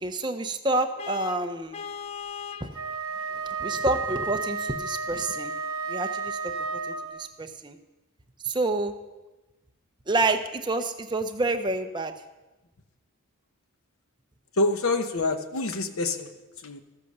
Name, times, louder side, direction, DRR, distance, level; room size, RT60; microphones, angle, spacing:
voice 1, 0.0-1.8 2.6-2.7 3.6-5.5 5.9-6.5 6.9-7.8 8.4-8.9 10.1-12.1, right 2 dB, 20° right, 6 dB, 0.7 m, -28 dB
Vehicle horn car horn honking, 1.0-2.8, left 7 dB, 30° left, 0.4 m, -38 dB
Wind instrument woodwind instrument, 2.7-7.3, right 4 dB, 75° right, 1.3 m, -32 dB
voice 2, 14.6-16.3 16.6-16.8, left 2 dB, 70° left, 8 dB, 0.9 m, -26 dB
13.0 x 8.3 x 6.6 m, 1.1 s
head